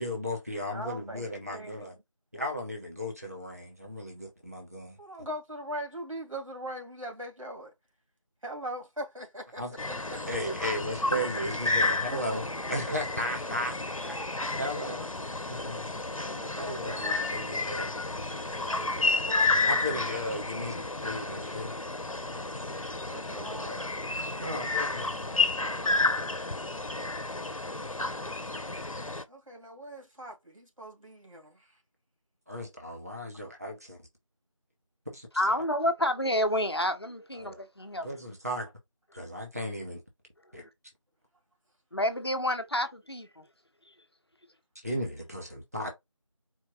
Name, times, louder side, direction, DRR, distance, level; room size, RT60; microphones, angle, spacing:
voice 1, 0.0-1.9 2.3-5.0 9.6-9.7 10.3-12.4 12.7-14.2 14.6-15.0 15.5-15.9 16.6-17.9 19.6-21.7 24.4-26.0 32.5-34.0 35.1-35.3 37.4-37.6 38.0-38.7 39.1-40.0 40.5-40.7 44.8-45.9, equal, 30° right, 0.9 m, -36 dB
voice 2, 0.7-1.9 5.0-7.7 8.4-9.7 10.1-10.4 11.8-12.4 12.9-13.0 14.6-15.1 16.2-17.4 18.6-20.1 23.1-23.8 29.3-31.7, right 1 dB, 80° right, 2.6 m, -41 dB
sound 1, 9.8-29.2, left 3 dB, 85° left, 0.9 m, -31 dB
voice 3, 35.3-38.2 40.6-40.7 41.9-43.4, left 1 dB, 50° left, 0.9 m, -29 dB
4.5 x 2.2 x 4.2 m
figure-of-eight pair, 180°, 17 cm